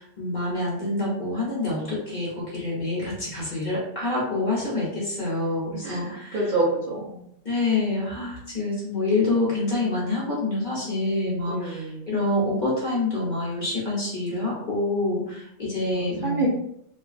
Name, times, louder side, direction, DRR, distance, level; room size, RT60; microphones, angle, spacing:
voice 1, 0.0-6.4 7.4-16.4, left 2 dB, 40° left, -6 dB, 1.0 m, -27 dB
voice 2, 5.8-7.3 11.5-12.1 15.9-16.5, right 2 dB, 50° right, -5 dB, 0.7 m, -28 dB
3.1 x 2.3 x 2.4 m, 0.73 s
omnidirectional pair, 1.3 m